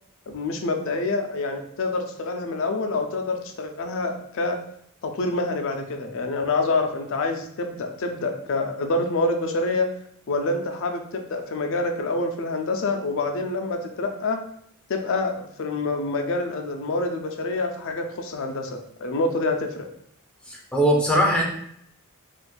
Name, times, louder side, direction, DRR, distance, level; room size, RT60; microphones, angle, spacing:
voice 1, 0.3-4.6 5.0-9.9 10.3-14.4 14.9-19.9, left 2 dB, 60° left, 5 dB, 0.5 m, -27 dB
voice 2, 20.5-21.4, equal, 5° left, -3 dB, 0.6 m, -20 dB
4.1 x 2.5 x 2.2 m, 0.70 s
head